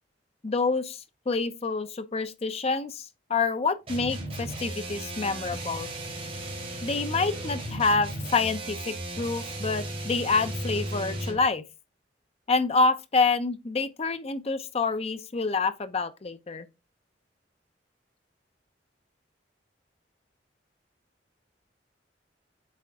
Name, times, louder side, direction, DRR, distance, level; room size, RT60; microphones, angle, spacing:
voice 1, 0.4-3.0 3.3-5.9 6.8-11.6 12.5-16.7, left 4 dB, 35° left, 0.6 m, -27 dB
sound 1, 3.9-11.5, right 1 dB, 35° right, 3.4 m, -35 dB
7.6 x 3.7 x 3.5 m
head